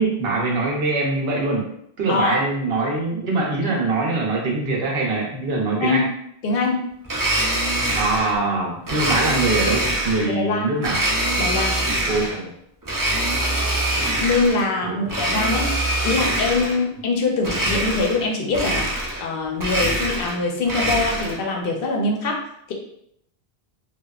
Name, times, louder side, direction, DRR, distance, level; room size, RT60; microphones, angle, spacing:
voice 1, 0.0-1.7 2.0-6.0 7.9-11.0 12.1-12.5 14.8-15.2, right 3 dB, 75° right, -1 dB, 0.9 m, -23 dB
voice 2, 2.1-2.4 5.7-6.1 6.4-6.9 10.2-10.7 11.4-11.8 14.2-15.7 16.0-22.7, left 3 dB, 70° left, 0 dB, 0.7 m, -23 dB
Domestic sounds home sounds, 7.0-8.4 8.9-10.3 10.8-12.4 12.8-14.6 15.0-16.8 17.4-18.3 18.5-19.3 19.5-21.4, right 1 dB, 30° right, 0.4 m, -24 dB
2.9 x 2.3 x 2.3 m, 0.74 s
omnidirectional pair, 1.0 m